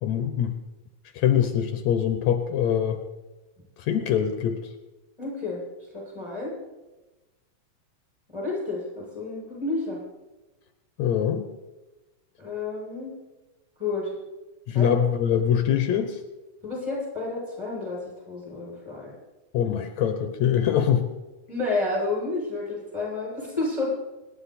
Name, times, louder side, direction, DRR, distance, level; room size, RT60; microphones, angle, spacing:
voice 1, 0.0-0.6 1.1-3.0 3.8-4.6 11.0-11.5 14.7-16.2 19.5-21.1, left 9 dB, 75° left, 7 dB, 2.3 m, -23 dB
voice 2, 5.2-5.6 5.9-6.5 8.3-10.0 12.4-13.1 13.8-14.1 14.7-15.0 16.6-19.2 21.5-23.9, left 3 dB, 10° right, -4 dB, 6.8 m, -30 dB
25.5 x 10.0 x 4.3 m, 1.1 s
omnidirectional pair, 3.3 m